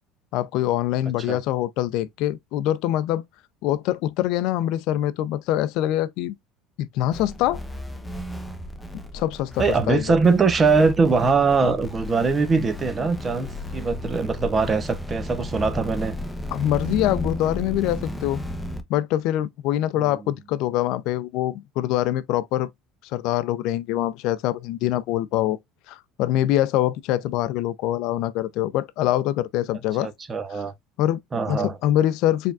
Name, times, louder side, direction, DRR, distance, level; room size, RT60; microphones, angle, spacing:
voice 1, 0.3-3.2 3.6-6.3 6.8-7.6 9.1-10.2 16.5-18.4 18.9-22.7 23.0-25.6 25.9-30.1 30.5-30.6 31.0-31.2 31.5-32.5, left 13 dB, 70° left, 0.5 m, -24 dB
sound 1, 7.1-18.8, left 1 dB, 5° left, 0.8 m, -34 dB
voice 2, 9.6-16.1 30.0-30.7 31.3-31.7, right 4 dB, 30° right, 0.8 m, -22 dB
4.6 x 3.5 x 2.4 m
supercardioid pair, 105°, 0 cm